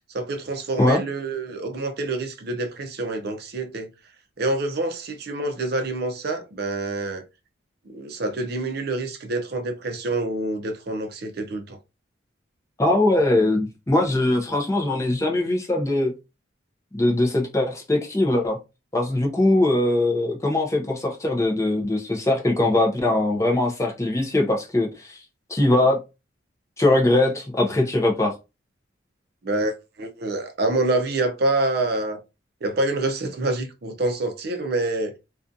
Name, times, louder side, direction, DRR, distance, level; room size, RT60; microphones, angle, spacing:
voice 1, 0.1-3.9 4.4-7.2 7.9-11.8 29.4-29.7 30.0-32.2 32.6-35.1, right 2 dB, 55° right, 0.5 m, -26 dB
voice 2, 12.8-16.1 16.9-18.6 18.9-25.2 25.5-26.0 26.8-28.3, left 2 dB, 15° left, 0.4 m, -21 dB
2.5 x 2.3 x 2.5 m
head